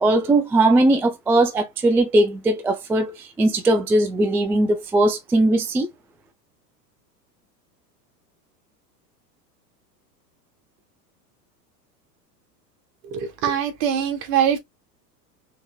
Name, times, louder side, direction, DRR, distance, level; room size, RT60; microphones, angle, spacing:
voice 1, 0.0-5.9, right 2 dB, 5° right, 0.3 m, -19 dB
voice 2, 13.1-14.6, right 8 dB, 55° right, 1.7 m, -22 dB
4.7 x 3.5 x 2.3 m
hypercardioid pair, 95°, 49 cm